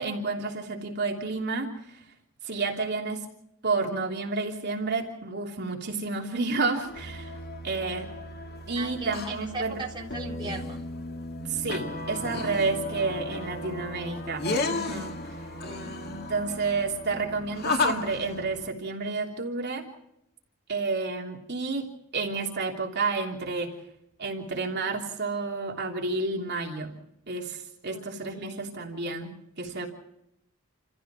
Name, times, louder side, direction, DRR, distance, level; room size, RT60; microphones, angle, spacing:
voice 1, 0.0-1.7 2.4-3.3 3.6-7.3 7.6-8.1 8.7-9.8 11.5-15.2 16.1-19.9 20.7-21.8 22.1-23.7 24.2-26.9 27.3-29.9, right 3 dB, 50° right, 0 dB, 3.2 m, -30 dB
sound 1, 6.8-18.7, left 2 dB, 50° left, 2.2 m, -34 dB
voice 2, 8.8-10.8 15.6-15.9 27.9-28.0 28.3-28.7, right 3 dB, 20° right, -2 dB, 3.7 m, -39 dB
29.5 x 15.0 x 6.2 m, 0.81 s
head